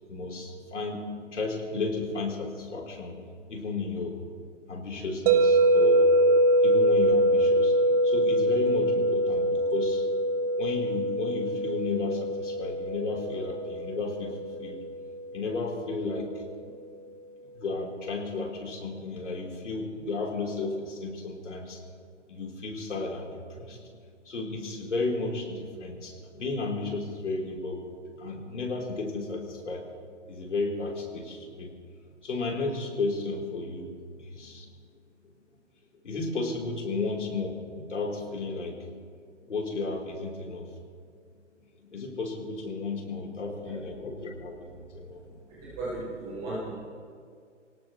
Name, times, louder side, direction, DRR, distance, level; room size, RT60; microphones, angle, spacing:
voice 1, 0.1-1.0 1.3-4.1 4.7-6.2 6.6-10.0 10.4-14.8 15.3-16.7 17.5-21.8 22.3-23.8 24.2-27.8 28.2-29.9 30.3-31.7 32.1-33.9 34.2-34.7 36.0-38.9 39.4-40.7 41.8-45.4, left 3 dB, 70° left, -1 dB, 4.0 m, -33 dB
sound 1, 5.3-15.3, right 1 dB, 30° right, 0.8 m, -24 dB
voice 2, 43.4-43.8 45.5-46.7, right 2 dB, 5° right, -8 dB, 0.3 m, -36 dB
24.0 x 18.0 x 3.2 m, 2.1 s
figure-of-eight pair, 130°, 37 cm